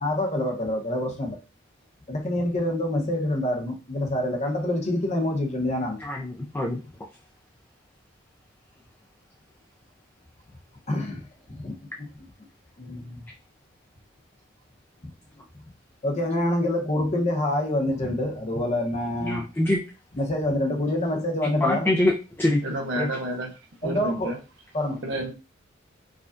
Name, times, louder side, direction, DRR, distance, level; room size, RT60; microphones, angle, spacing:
voice 1, 0.0-1.4 2.1-6.0 10.9-11.2 11.6-11.8 12.8-13.2 16.0-19.4 20.2-21.9 23.8-24.3 24.7-25.0, left 1 dB, 35° left, 0.8 m, -26 dB
voice 2, 6.0-6.8 19.2-19.8 21.4-22.1 22.4-22.6 23.0-23.1, left 1 dB, 10° left, 0.4 m, -24 dB
voice 3, 22.6-23.5 23.8-24.4 25.0-25.3, right 1 dB, 70° right, 0.7 m, -30 dB
4.9 x 2.3 x 2.5 m
head